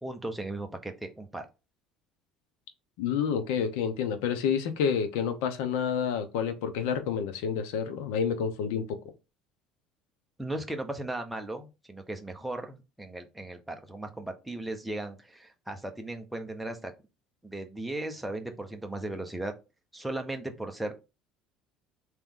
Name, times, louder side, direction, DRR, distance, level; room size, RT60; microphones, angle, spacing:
voice 1, 0.0-1.5 10.4-16.9 17.4-19.5 19.9-21.0, right 1 dB, 5° right, 0.8 m, -37 dB
voice 2, 3.0-9.0, left 7 dB, 85° left, 0.8 m, -29 dB
3.5 x 2.9 x 3.7 m
cardioid pair, 120°, 0 cm